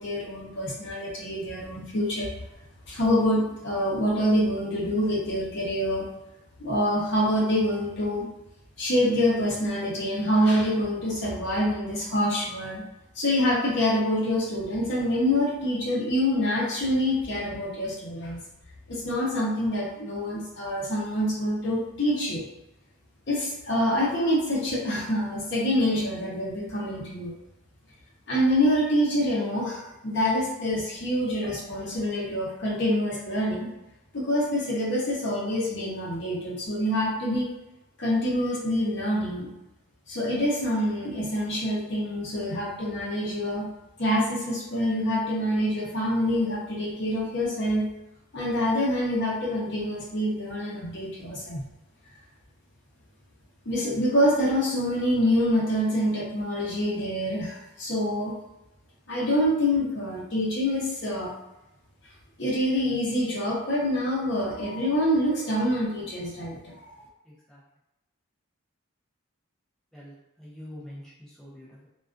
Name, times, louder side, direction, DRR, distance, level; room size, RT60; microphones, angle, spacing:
voice 1, 0.0-2.3 2.9-6.1 6.6-8.3 8.8-12.8 13.1-18.4 18.9-22.4 23.3-27.4 28.3-33.7 34.1-37.5 38.0-39.5 40.1-43.7 44.0-47.9 48.3-51.7 53.7-58.4 59.1-61.3 62.4-67.0, equal, 50° left, -4 dB, 0.6 m, -26 dB
voice 2, 69.9-71.9, left 1 dB, ahead, -9 dB, 0.4 m, -45 dB
2.3 x 2.2 x 2.4 m, 0.95 s
head